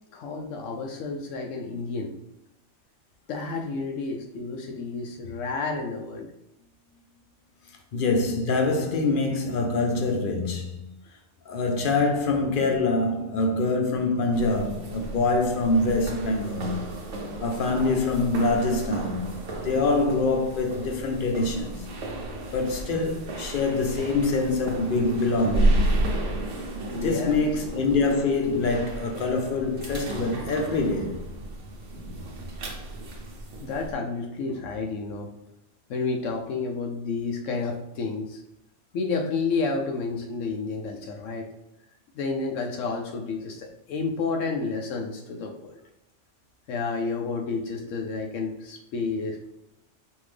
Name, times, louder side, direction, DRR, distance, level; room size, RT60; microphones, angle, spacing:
voice 1, 0.1-2.1 3.3-6.3 27.0-27.4 33.6-35.3 35.9-38.4 38.9-41.5 42.1-45.7 46.7-49.5, left 4 dB, 85° left, 1.0 m, -30 dB
voice 2, 7.9-10.9 11.5-16.8 17.4-19.3 19.6-21.9 22.5-25.9 27.0-31.2, left 3 dB, 50° left, 0.7 m, -25 dB
sound 1, 14.3-33.9, right 1 dB, 85° right, 1.2 m, -32 dB
5.4 x 2.6 x 3.3 m
omnidirectional pair, 1.3 m